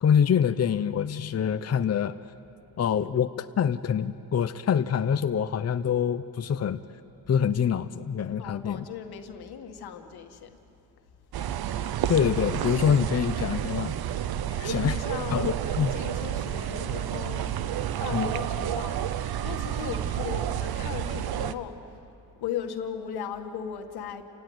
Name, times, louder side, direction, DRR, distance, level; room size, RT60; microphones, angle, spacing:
voice 1, 0.0-2.1 2.8-6.8 7.3-8.8 12.1-13.9 14.6-15.0 15.3-15.9 18.1-18.3, left 8 dB, 45° left, 10 dB, 0.7 m, -25 dB
voice 2, 8.4-10.6 14.6-19.1 19.4-22.1 22.4-24.2, left 8 dB, 85° left, 6 dB, 1.8 m, -37 dB
sound 1, 11.3-21.5, right 10 dB, 75° right, 0.9 m, -30 dB
29.5 x 17.0 x 9.5 m, 2.8 s
cardioid pair, 70°, 37 cm